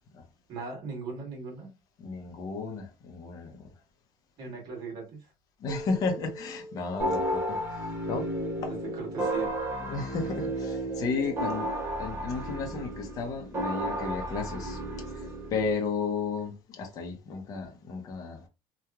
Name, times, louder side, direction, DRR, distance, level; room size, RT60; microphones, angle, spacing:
voice 1, 0.5-1.7 4.4-5.3 8.7-9.5, right 4 dB, 45° right, 1.3 m, -39 dB
voice 2, 2.0-3.7 5.6-8.3 8.6-8.7 9.8-18.5, left 4 dB, 35° left, 0.7 m, -34 dB
Keyboard (musical), 5.7-8.9, equal, 5° left, 0.9 m, -45 dB
sound 1, 7.0-15.7, right 1 dB, 25° right, 0.6 m, -33 dB
2.9 x 2.3 x 2.3 m
cardioid pair, 175°, 10 cm